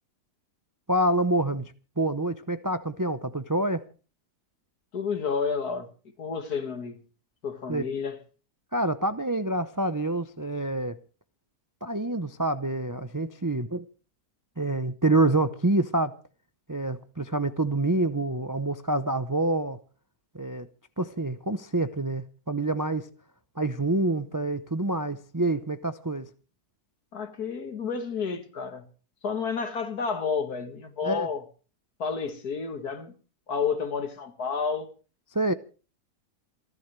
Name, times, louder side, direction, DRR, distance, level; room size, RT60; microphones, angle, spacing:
voice 1, 0.9-3.9 7.7-7.9 8.7-11.0 11.8-13.9 14.6-16.2 16.7-19.8 20.3-20.7 21.0-23.1 23.6-26.3 31.0-31.3 35.3-35.5, right 2 dB, 25° right, 0.4 m, -27 dB
voice 2, 4.9-5.9 6.2-7.0 7.4-8.2 27.1-28.9 29.2-31.4 32.0-33.1 33.5-34.9, left 5 dB, 70° left, 2.4 m, -30 dB
28.5 x 12.5 x 3.3 m
omnidirectional pair, 1.7 m